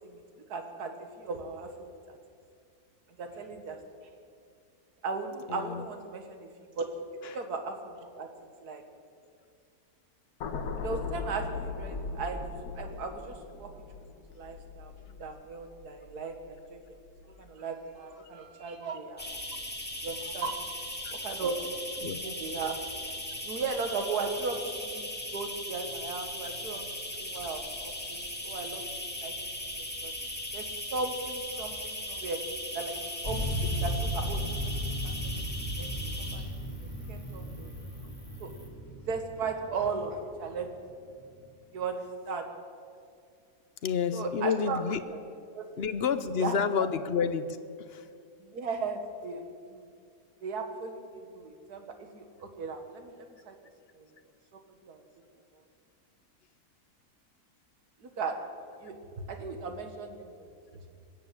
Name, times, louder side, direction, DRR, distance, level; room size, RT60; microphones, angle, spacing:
voice 1, 0.5-2.2 3.2-3.8 5.0-6.5 6.8-6.9 7.3-8.3 8.6-8.8 10.8-12.4 12.8-13.7 14.3-19.3 20.0-20.5 21.2-21.6 22.2-22.8 23.4-28.8 29.2-29.3 29.8-30.1 30.5-30.6 30.9-32.4 32.7-32.9 33.2-34.7 35.0-35.3 35.8-35.9 36.3-36.4 37.1-37.7 38.4-38.5 39.1-40.7 41.7-42.0 42.3-42.5 44.1-44.8 45.5-45.7 46.4-46.6 48.4-49.9 50.4-53.6 54.0-54.1 54.9-55.0 58.0-58.4 58.8-60.3, right 4 dB, 85° right, 5 dB, 1.9 m, -36 dB
voice 2, 5.5-5.8 7.2-7.4 21.0-21.1 22.0-22.2 43.8-45.0 45.8-47.6 47.9-48.1, left 6 dB, 55° left, 11 dB, 0.7 m, -29 dB
sound 1, 10.4-16.7 17.1-17.3, left 4 dB, 80° left, 1.5 m, -39 dB
sound 2, 19.2-38.7, left 1 dB, 5° left, 2.0 m, -39 dB
sound 3, 33.2-40.8 41.5-41.6, equal, 30° left, 3.6 m, -35 dB
21.0 x 7.8 x 8.5 m, 2.3 s
omnidirectional pair, 1.6 m